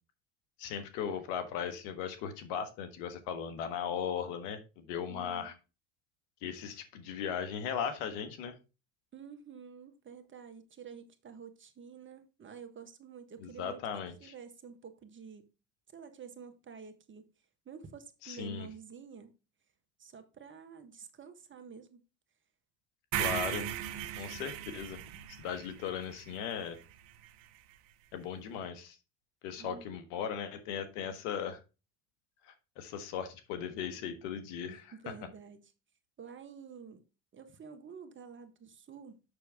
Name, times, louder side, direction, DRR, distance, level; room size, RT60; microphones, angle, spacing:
voice 1, 0.6-5.5 6.4-8.6 13.4-14.3 18.2-18.7 23.2-23.7 24.2-25.0 25.4-26.8 28.1-29.0 29.4-31.6 32.4-35.1, left 7 dB, 75° left, 1.5 m, -38 dB
voice 2, 5.1-5.5 9.1-13.8 14.2-15.5 15.9-17.3 17.6-19.3 20.0-22.0 29.6-29.9 34.6-35.7 36.2-37.0 37.3-39.2, right 6 dB, 30° right, 1.4 m, -49 dB
sound 1, 23.1-27.3, right 11 dB, 65° right, 1.0 m, -38 dB
6.8 x 6.3 x 3.5 m
supercardioid pair, 85°, 38 cm